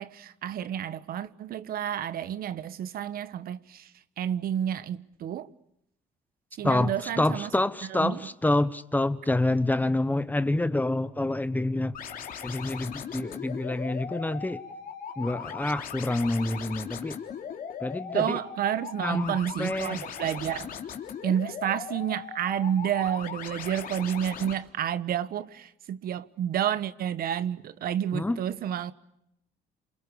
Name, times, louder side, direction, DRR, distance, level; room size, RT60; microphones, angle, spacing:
voice 1, 0.0-3.9 4.2-5.5 6.5-7.5 7.9-8.2 18.1-20.8 21.2-28.9, right 10 dB, 60° right, 1.4 m, -30 dB
voice 2, 6.6-12.0 12.4-14.6 15.2-17.2 17.8-18.4 19.0-20.0 28.1-28.4, left 2 dB, 10° left, 1.2 m, -27 dB
sound 1, 11.9-24.5, left 7 dB, 55° left, 3.5 m, -39 dB
28.0 x 27.5 x 7.0 m
cardioid pair, 110°, 17 cm